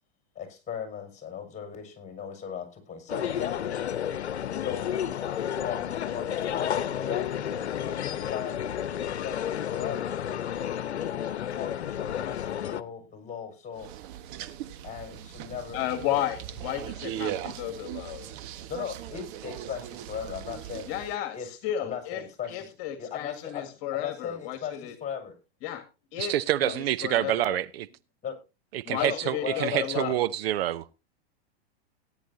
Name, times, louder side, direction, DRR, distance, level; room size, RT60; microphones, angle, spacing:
voice 1, 0.4-3.8 4.5-5.0 5.5-10.2 11.4-13.9 14.8-15.8 16.1-16.4 18.7-20.9 21.3-21.5 21.8-25.3 26.6-26.7 28.2-28.4 29.0-30.1, left 8 dB, 20° left, 5.7 m, -38 dB
sound 1, 3.1-12.8, left 9 dB, 80° left, 1.0 m, -31 dB
sound 2, 13.7-21.2, right 11 dB, 50° right, 1.4 m, -39 dB
voice 2, 15.7-18.3 20.9-22.2 22.5-24.9 25.6-25.8 26.1-26.3 26.6-27.6 28.9-30.2, left 12 dB, 45° left, 2.0 m, -33 dB
voice 3, 26.2-27.9 28.7-31.0, right 13 dB, 65° right, 0.8 m, -27 dB
18.5 x 10.0 x 2.7 m
hypercardioid pair, 110°, 32 cm